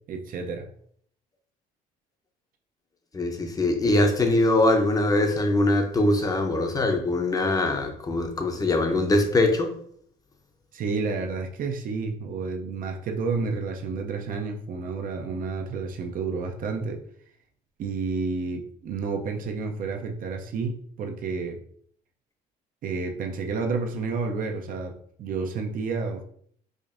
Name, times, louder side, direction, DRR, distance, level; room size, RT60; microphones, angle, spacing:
voice 1, 0.1-0.7 10.7-17.0 17.8-21.6 22.8-26.2, right 4 dB, 55° right, 0.6 m, -30 dB
voice 2, 3.1-9.7, left 2 dB, 20° left, 0.7 m, -22 dB
4.9 x 2.5 x 2.5 m
cardioid pair, 110°, 17 cm